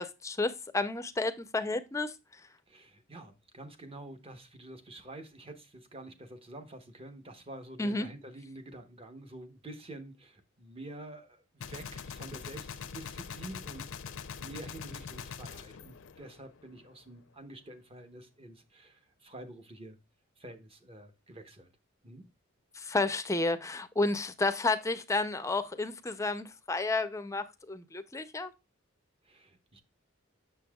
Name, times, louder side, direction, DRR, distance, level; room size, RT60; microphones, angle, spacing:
voice 1, 0.0-2.1 7.8-8.1 22.7-28.5, left 3 dB, 15° left, 0.5 m, -31 dB
voice 2, 2.7-20.0 20.4-21.7 22.0-22.2 29.2-29.8, right 1 dB, 30° right, 0.9 m, -48 dB
Gunshot gunfire, 11.6-16.8, left 6 dB, 70° left, 0.5 m, -43 dB
6.9 x 6.6 x 2.3 m
head